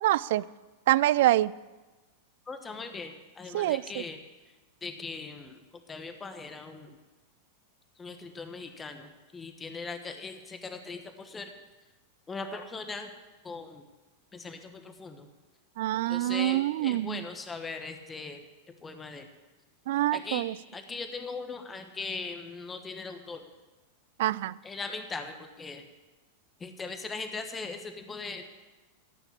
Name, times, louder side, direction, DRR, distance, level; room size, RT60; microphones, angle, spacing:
voice 1, 0.0-0.4 0.9-1.5 3.5-3.8 15.8-17.2 19.9-20.5 24.2-24.5, right 15 dB, 65° right, 21 dB, 0.3 m, -25 dB
voice 2, 2.5-4.2 4.8-7.0 8.0-11.5 12.3-13.1 13.4-13.8 14.3-15.3 16.1-19.3 20.1-23.5 24.6-25.8 26.6-28.4, left 4 dB, 20° left, 7 dB, 1.3 m, -40 dB
14.5 x 5.9 x 8.4 m, 1.2 s
hypercardioid pair, 100°, 0 cm